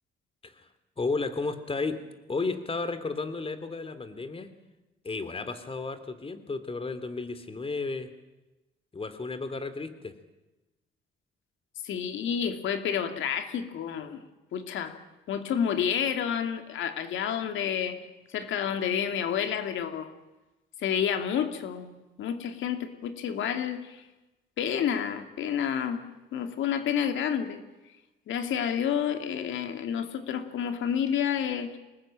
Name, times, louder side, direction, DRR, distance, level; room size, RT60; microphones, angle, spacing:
voice 1, 1.0-2.0 2.3-4.5 5.0-8.1 8.9-10.1, left 3 dB, 30° left, 11 dB, 2.9 m, -33 dB
voice 2, 11.8-14.2 14.5-15.0 15.3-18.0 18.3-20.1 20.8-24.0 24.6-26.0 26.3-27.6 28.3-31.8, left 8 dB, 80° left, 8 dB, 2.6 m, -29 dB
25.0 x 19.5 x 8.9 m, 1.0 s
cardioid pair, 90°, 20 cm